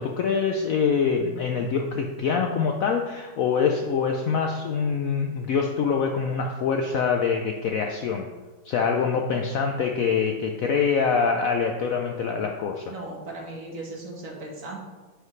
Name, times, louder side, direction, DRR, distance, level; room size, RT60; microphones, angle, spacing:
voice 1, 0.0-8.3 8.6-12.9, left 6 dB, 70° left, 3 dB, 0.8 m, -25 dB
voice 2, 12.9-14.8, right 2 dB, 50° right, -1 dB, 1.6 m, -37 dB
10.0 x 4.9 x 3.2 m, 1.3 s
omnidirectional pair, 1.9 m